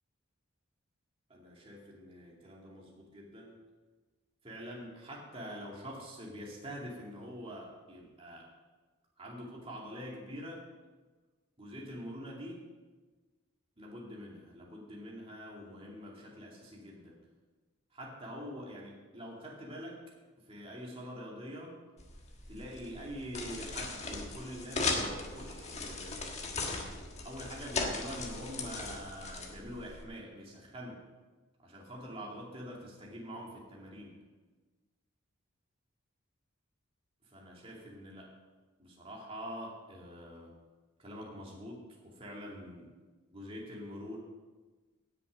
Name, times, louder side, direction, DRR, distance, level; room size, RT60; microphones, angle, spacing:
voice 1, 1.3-3.6 4.4-8.5 9.2-10.6 11.6-12.7 13.8-17.2 17.9-20.0 20.4-21.8 22.5-26.2 27.2-31.0 31.6-34.1 37.2-38.3 38.8-40.5 41.0-42.9 43.3-44.2, equal, 25° right, -3 dB, 2.4 m, -45 dB
sound 1, 22.0-30.0, left 3 dB, 30° left, 1.4 m, -38 dB
17.5 x 6.9 x 5.2 m, 1.3 s
head